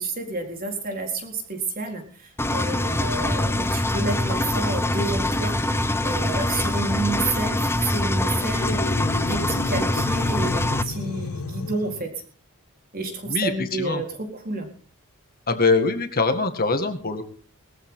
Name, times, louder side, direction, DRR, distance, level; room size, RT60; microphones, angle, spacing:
voice 1, 0.0-5.6 6.0-12.1 12.9-14.7, right 3 dB, 40° right, 3 dB, 4.1 m, -30 dB
Engine, 2.4-10.8, left 1 dB, 10° left, 0.9 m, -24 dB
sound 1, 8.6-12.1, left 4 dB, 70° left, 0.7 m, -32 dB
voice 2, 13.3-14.0 15.5-17.2, left 3 dB, 45° left, 7 dB, 2.0 m, -23 dB
20.5 x 14.0 x 3.8 m, 0.40 s
head